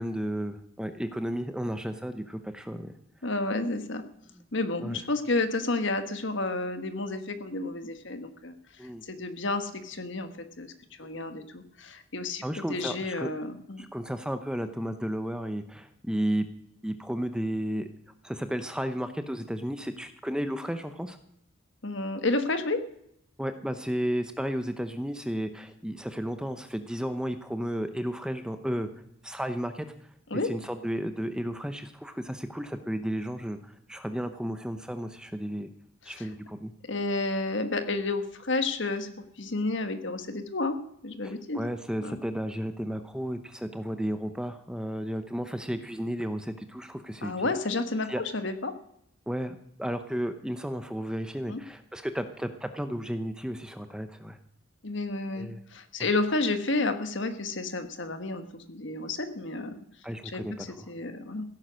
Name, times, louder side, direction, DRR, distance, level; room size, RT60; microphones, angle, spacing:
voice 1, 0.0-2.9 4.8-5.0 8.8-9.0 12.4-13.4 13.8-16.5 16.8-17.9 18.2-21.2 23.4-28.9 29.2-29.9 30.4-35.7 36.0-36.7 41.2-47.3 48.1-48.2 49.3-54.4 55.4-55.6 56.0-56.1 60.0-60.9, equal, 5° right, 9 dB, 0.8 m, -33 dB
voice 2, 3.2-4.0 4.5-8.5 9.0-10.3 10.6-10.7 11.0-12.4 12.7-13.9 21.8-22.8 30.3-30.5 36.1-36.3 36.9-40.8 41.0-41.6 42.0-42.2 47.2-48.7 51.5-51.6 54.8-59.7 60.2-61.4, left 2 dB, 60° left, 8 dB, 1.5 m, -31 dB
16.0 x 9.4 x 6.4 m, 0.73 s
head